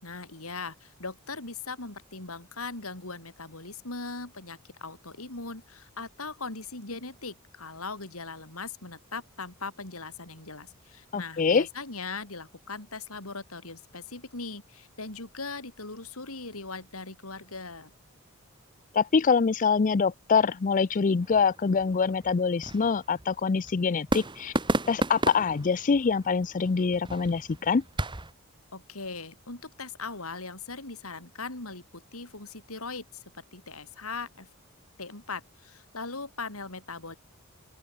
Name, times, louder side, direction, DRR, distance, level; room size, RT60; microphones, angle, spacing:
voice 1, 0.0-17.9 28.7-33.2 33.5-34.5 35.0-37.2, left 3 dB, 90° left, 5.0 m, -39 dB
voice 2, 11.1-11.7 18.9-24.5 24.9-27.8, left 5 dB, 35° left, 0.4 m, -25 dB
sound 1, 21.2-28.3, right 2 dB, 20° right, 2.0 m, -34 dB
open air
head